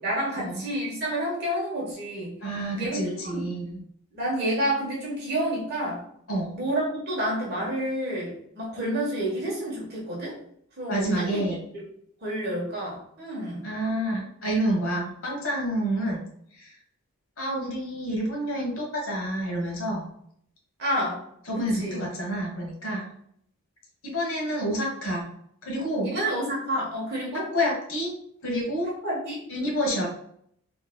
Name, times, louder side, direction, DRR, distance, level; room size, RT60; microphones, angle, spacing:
voice 1, 0.0-2.4 2.7-3.4 4.1-6.0 6.5-10.3 10.8-11.4 11.7-11.8 12.2-13.7 20.8-21.2 21.6-22.0 26.0-27.5 29.0-29.4, right 1 dB, 45° right, -4 dB, 1.2 m, -29 dB
voice 2, 2.4-3.8 6.3-6.5 10.9-11.7 13.6-16.2 16.5-16.7 17.4-20.1 21.5-23.1 24.0-25.3 25.6-26.1 27.5-28.2 28.4-28.9 29.5-30.1, equal, 65° left, -2 dB, 1.3 m, -28 dB
4.5 x 3.2 x 2.3 m, 0.67 s
head